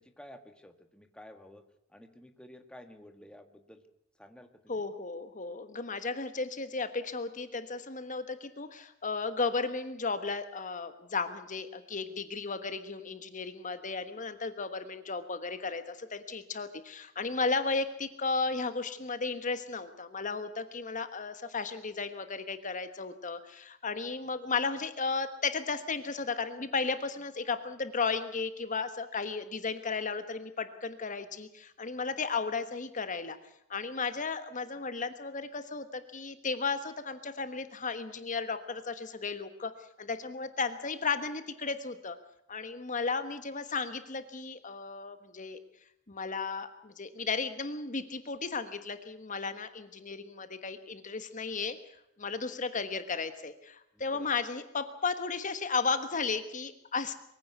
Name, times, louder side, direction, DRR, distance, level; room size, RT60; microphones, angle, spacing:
voice 1, 0.0-1.6 1.9-3.8 4.2-4.8 53.9-54.3, left 1 dB, 5° left, 7 dB, 1.7 m, -52 dB
voice 2, 4.7-33.4 33.7-39.7 40.0-42.2 42.5-45.6 46.1-51.8 52.2-57.1, left 4 dB, 40° left, 10 dB, 1.4 m, -34 dB
23.5 x 16.0 x 8.2 m, 0.81 s
head